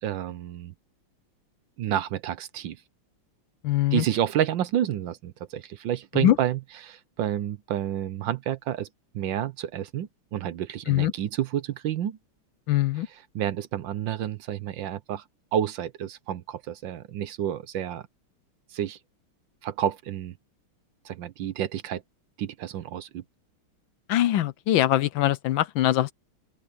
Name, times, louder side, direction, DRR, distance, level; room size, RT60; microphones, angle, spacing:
voice 1, 0.0-0.7 1.8-2.8 3.9-8.9 9.1-12.2 13.3-15.2 15.5-18.0 18.7-19.0 19.6-20.3 21.0-22.0 22.4-23.2, right 10 dB, 65° right, 1.4 m, -29 dB
voice 2, 3.6-4.0 6.1-6.4 10.9-11.1 12.7-13.1 24.1-26.1, left 13 dB, 70° left, 1.3 m, -22 dB
open air
omnidirectional pair, 2.4 m